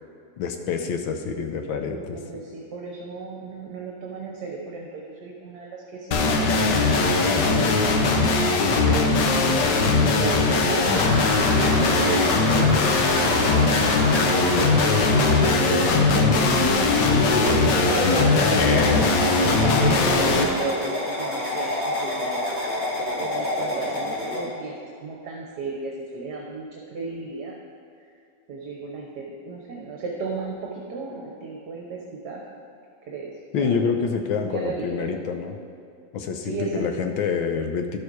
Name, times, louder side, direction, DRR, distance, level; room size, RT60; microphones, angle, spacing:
voice 1, 0.4-2.4 18.5-19.7 20.0-20.2 33.5-35.6 36.1-38.0, left 5 dB, 85° left, 5 dB, 1.6 m, -27 dB
voice 2, 1.9-6.4 6.9-14.0 14.7-27.6 28.5-32.6 33.1-33.3 33.6-34.1 34.4-35.2 36.4-37.0, right 4 dB, 60° right, -2 dB, 1.5 m, -34 dB
sound 1, 6.1-20.4, left 3 dB, 70° left, 1.4 m, -20 dB
sound 2, 10.8-24.4, left 1 dB, 25° left, 1.7 m, -28 dB
11.5 x 6.5 x 4.7 m, 2.5 s
omnidirectional pair, 2.1 m